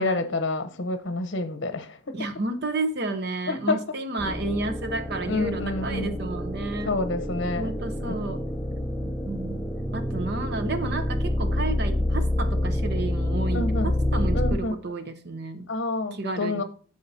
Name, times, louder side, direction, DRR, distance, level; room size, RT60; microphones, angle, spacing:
voice 1, 0.0-2.1 3.5-3.8 5.2-6.2 6.9-7.8 8.0-8.2 13.5-13.9 14.3-14.8 15.7-16.6, left 2 dB, 60° left, 0.9 m, -28 dB
voice 2, 2.1-6.9 7.6-8.4 9.0-9.6 9.9-15.7 16.1-16.6, right 2 dB, 55° right, 0.9 m, -31 dB
sound 1, 4.2-14.6, left 1 dB, ahead, 0.6 m, -28 dB
9.6 x 6.6 x 2.8 m
head